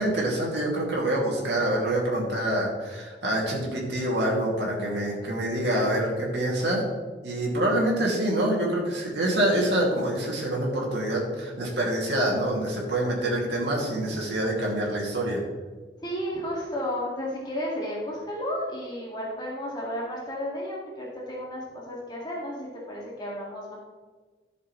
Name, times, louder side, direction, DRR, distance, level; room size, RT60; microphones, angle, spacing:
voice 1, 0.0-6.8 7.2-15.4, right 1 dB, 75° right, -3 dB, 2.5 m, -26 dB
voice 2, 16.0-23.8, equal, 25° left, -5 dB, 2.1 m, -33 dB
12.5 x 6.8 x 3.2 m, 1.4 s
head